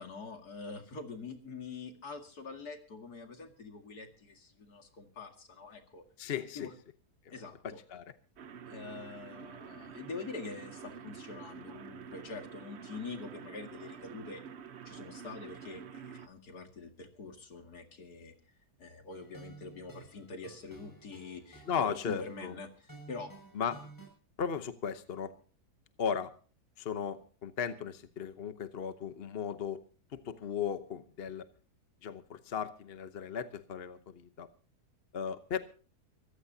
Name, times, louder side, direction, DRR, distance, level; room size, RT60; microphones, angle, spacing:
voice 1, 0.0-6.0 6.5-6.7 7.3-7.8 8.7-14.4 14.9-18.3 18.8-23.3, left 4 dB, 70° left, 4 dB, 2.7 m, -45 dB
voice 2, 6.2-6.7 7.2-7.3 7.9-8.0 21.7-22.5 23.5-23.8 24.4-25.3 26.0-26.3 26.8-29.8 30.1-31.5 32.0-34.5 35.1-35.6, left 7 dB, 45° left, 10 dB, 1.0 m, -36 dB
sound 1, 8.4-16.3, right 7 dB, 50° right, 0.9 m, -48 dB
sound 2, 19.1-24.1, right 3 dB, 10° left, 6.4 m, -54 dB
24.0 x 15.0 x 2.8 m, 0.38 s
omnidirectional pair, 1.7 m